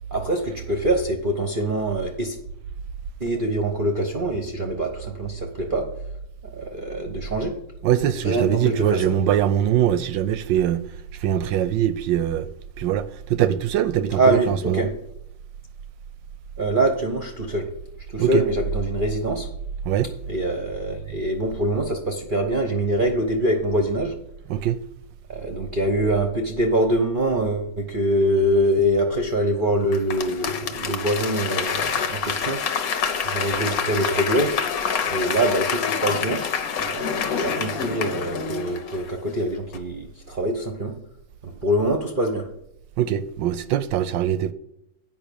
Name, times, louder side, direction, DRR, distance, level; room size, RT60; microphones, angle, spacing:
voice 1, 0.1-2.4 3.2-5.8 6.5-7.5 8.2-9.1 14.2-14.9 16.6-17.7 18.1-19.5 20.3-24.1 25.3-32.6 33.2-34.5 35.0-36.4 36.8-40.9 41.4-42.5, right 1 dB, 50° right, 0.6 m, -24 dB
voice 2, 7.8-10.9 11.2-12.5 12.8-14.8 18.2-18.4 19.8-20.1 24.5-24.8 43.0-44.5, right 10 dB, 75° right, 1.1 m, -22 dB
Applause / Crowd, 29.9-39.3 39.7-39.8, left 6 dB, 55° left, 1.1 m, -27 dB
8.7 x 5.6 x 6.9 m
omnidirectional pair, 2.3 m